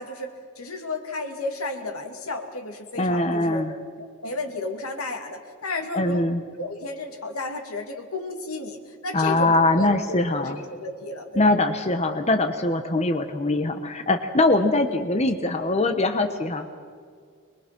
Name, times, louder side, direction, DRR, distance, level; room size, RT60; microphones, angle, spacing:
voice 1, 0.0-3.7 4.2-6.3 6.6-11.5, left 2 dB, 85° left, 5 dB, 2.5 m, -33 dB
voice 2, 3.0-3.7 5.9-6.4 9.1-10.6 11.4-16.7, left 2 dB, 30° left, 6 dB, 1.0 m, -22 dB
24.0 x 22.0 x 6.0 m, 2.1 s
head